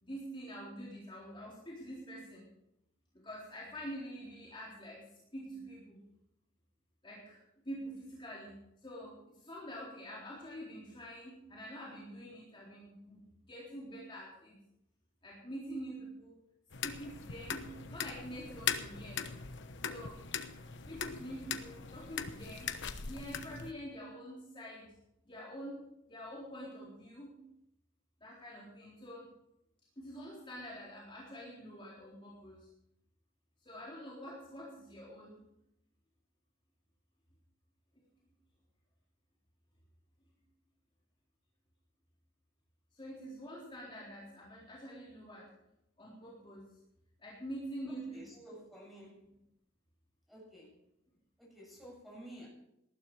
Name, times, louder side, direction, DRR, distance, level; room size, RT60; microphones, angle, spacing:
voice 1, 0.0-2.5 3.1-5.0 5.3-6.0 7.0-7.4 7.6-13.2 13.5-14.6 15.2-16.3 16.8-19.2 19.8-20.2 20.9-22.7 23.0-24.9 25.2-25.8 26.1-27.4 28.2-29.3 30.0-32.7 33.6-35.4 42.9-45.5 46.0-46.7 47.2-48.5 49.2-49.3, equal, 25° left, -6 dB, 3.8 m, -46 dB
sound 1, 16.7-23.7, left 7 dB, 60° left, 1.1 m, -40 dB
voice 2, 47.9-49.3 50.3-50.8 51.4-52.5, equal, ahead, -3 dB, 7.5 m, -52 dB
19.5 x 12.5 x 4.8 m, 0.82 s
head